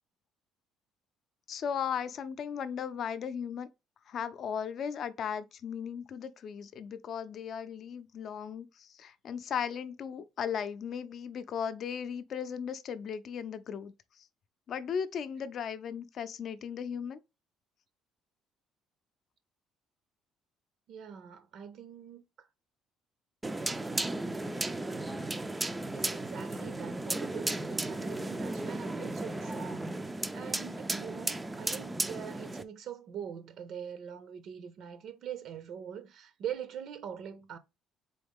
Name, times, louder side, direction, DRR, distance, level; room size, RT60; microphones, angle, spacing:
voice 1, 1.5-3.7 4.1-14.3 14.7-17.2, left 7 dB, 45° left, 0.5 m, -37 dB
voice 2, 20.9-22.5 25.9-37.6, right 8 dB, 55° right, 0.6 m, -43 dB
sound 1, 23.4-32.6, right 2 dB, 10° right, 0.4 m, -35 dB
3.9 x 3.8 x 3.5 m
cardioid pair, 145°, 0 cm